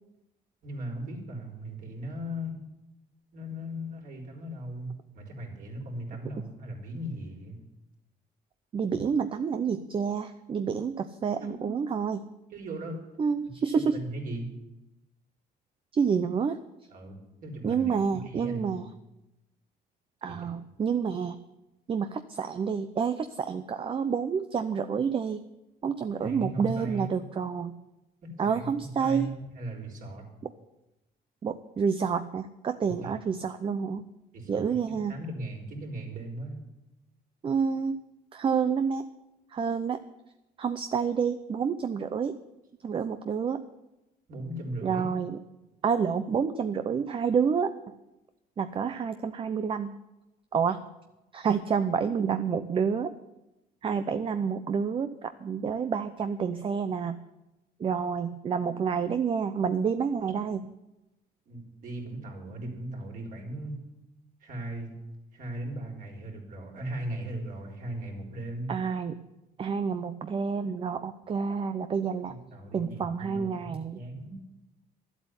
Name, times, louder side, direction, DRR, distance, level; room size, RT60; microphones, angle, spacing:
voice 1, 0.6-2.6 3.3-7.6 11.4-11.8 12.5-13.0 13.7-14.5 16.9-18.9 20.3-20.5 26.2-27.1 28.2-30.3 32.9-33.1 34.3-34.8 35.1-36.6 44.3-45.1 61.5-63.8 64.4-64.9 65.3-68.7 72.2-74.4, right 1 dB, 55° right, 1 dB, 3.9 m, -38 dB
voice 2, 8.7-12.3 13.2-14.0 15.9-16.6 17.6-18.9 20.2-21.4 21.9-25.4 25.8-27.7 28.4-29.3 30.4-30.5 31.4-34.1 34.5-35.2 37.4-38.0 38.3-39.1 39.5-40.0 40.6-42.4 42.8-43.6 44.8-45.4 45.8-47.7 48.6-49.9 50.5-50.9 51.3-53.1 53.8-57.2 57.8-60.6 68.7-69.2 69.6-72.4 72.7-74.0, right 6 dB, 30° right, 10 dB, 0.6 m, -29 dB
11.5 x 8.2 x 9.7 m, 0.96 s
cardioid pair, 110°, 17 cm